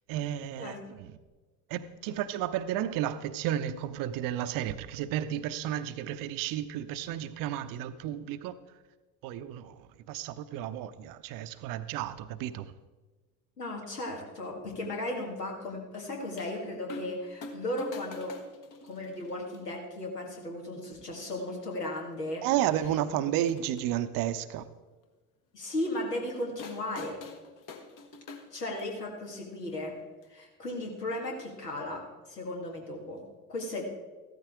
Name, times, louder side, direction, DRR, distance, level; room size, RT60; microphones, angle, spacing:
voice 1, 0.1-1.1 1.7-8.6 9.2-12.7 22.4-24.7, right 11 dB, 45° right, 0.7 m, -32 dB
voice 2, 13.6-18.3 18.8-22.4 25.5-27.2 28.5-30.0 30.3-32.0 32.3-33.2 33.5-33.8, left 1 dB, 80° left, 2.1 m, -36 dB
sound 1, 16.4-16.5 16.9-17.2 17.4-19.6 20.4-20.5 21.5-21.6 22.0-22.1 23.3-23.9 26.6-29.0 30.2-30.3, left 3 dB, 40° left, 1.2 m, -45 dB
14.5 x 13.0 x 3.6 m
figure-of-eight pair, 60°, 47 cm